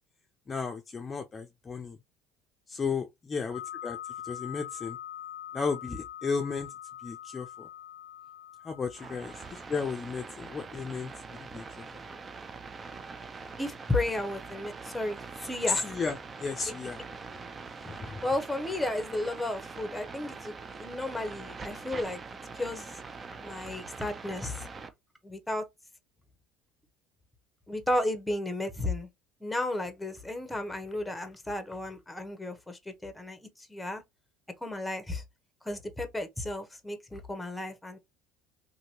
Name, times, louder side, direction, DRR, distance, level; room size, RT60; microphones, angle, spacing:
voice 1, 0.5-2.0 2.7-4.0 4.2-5.0 5.5-6.7 7.0-7.7 8.6-9.3 9.7-11.9 15.7-17.0 17.8-18.2, left 5 dB, 30° left, 0.5 m, -34 dB
sound 1, 3.5-9.7, left 11 dB, 90° left, 0.5 m, -43 dB
sound 2, 8.9-24.9, right 4 dB, 30° right, 0.5 m, -43 dB
voice 2, 13.6-15.9 18.2-22.2 22.5-22.9 23.4-24.6 25.2-25.7 27.7-29.1 29.4-33.4 33.7-34.0 34.6-35.2 35.6-38.0, left 1 dB, 10° left, 0.9 m, -33 dB
2.8 x 2.7 x 2.8 m
supercardioid pair, 85°, 0 cm